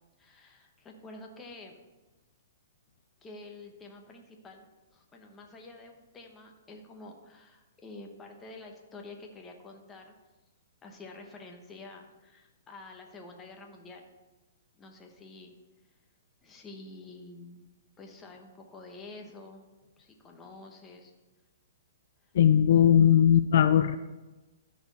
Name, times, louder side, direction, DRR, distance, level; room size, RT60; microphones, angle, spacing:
voice 1, 0.2-1.8 3.2-10.1 10.8-14.1 14.7-15.5 16.4-17.7 18.0-19.7 20.0-21.1 22.2-22.3, left 2 dB, 15° left, 2 dB, 1.1 m, -48 dB
voice 2, 22.3-24.0, left 9 dB, 60° left, 11 dB, 0.3 m, -19 dB
13.0 x 4.3 x 4.2 m, 1.2 s
hypercardioid pair, 150°, 0 cm